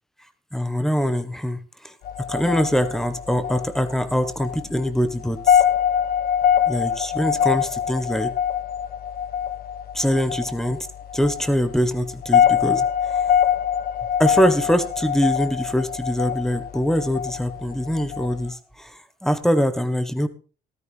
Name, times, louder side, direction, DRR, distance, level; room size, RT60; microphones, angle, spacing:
voice 1, 0.5-5.6 6.7-8.3 9.9-10.9 11.1-13.3 14.2-20.3, equal, ahead, 11 dB, 1.4 m, -23 dB
sound 1, 2.0-18.5, left 9 dB, 60° left, 1.2 m, -24 dB
14.0 x 13.0 x 3.6 m, 0.36 s
cardioid pair, 110°, 17 cm